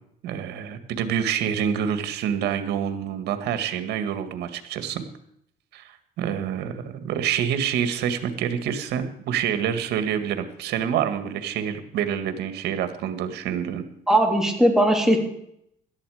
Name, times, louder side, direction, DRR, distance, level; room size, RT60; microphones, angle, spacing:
voice 1, 0.2-5.0 5.7-13.9, right 8 dB, 80° right, 9 dB, 1.9 m, -27 dB
voice 2, 14.1-15.2, right 1 dB, 5° right, 1 dB, 3.2 m, -19 dB
17.0 x 12.5 x 5.0 m, 0.73 s
cardioid pair, 110°, 17 cm